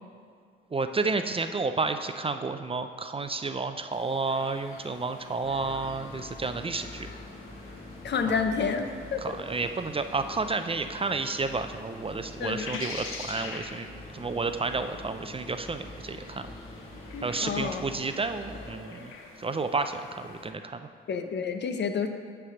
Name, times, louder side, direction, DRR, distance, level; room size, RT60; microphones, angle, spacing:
voice 1, 0.7-7.1 8.2-8.4 9.2-13.9 14.1-16.5 17.2-19.1 19.4-20.9, right 3 dB, 25° right, 8 dB, 0.5 m, -31 dB
sound 1, 3.9-20.5, left 4 dB, 85° left, 0.8 m, -47 dB
sound 2, 5.4-18.7, left 1 dB, 25° left, 2.1 m, -45 dB
voice 2, 8.0-9.3 12.4-12.8 17.1-17.8 21.1-22.1, left 5 dB, 55° left, 7 dB, 0.7 m, -29 dB
9.2 x 3.4 x 6.3 m, 2.1 s
supercardioid pair, 55°, 21 cm